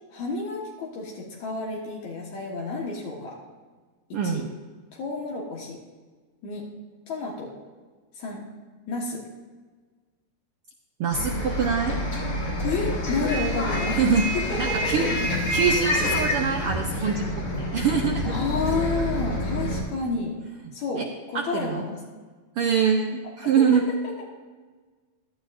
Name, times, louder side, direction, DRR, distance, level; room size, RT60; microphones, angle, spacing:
voice 1, 0.1-3.4 4.1-4.5 4.9-5.8 6.4-6.7 7.1-7.5 8.2-8.4 8.9-9.2 12.6-14.0 14.3-15.1 18.2-20.4 20.7-22.0 23.6-24.3, left 3 dB, 75° left, -2 dB, 2.8 m, -30 dB
voice 2, 4.1-4.5 11.0-12.0 13.9-14.3 14.6-15.1 15.5-18.4 21.0-21.1 21.3-21.8 22.6-23.9, right 6 dB, 75° right, 3 dB, 1.3 m, -24 dB
Bus, 11.1-19.8, left 1 dB, 45° left, 3.9 m, -27 dB
16.0 x 12.0 x 2.6 m, 1.4 s
omnidirectional pair, 3.3 m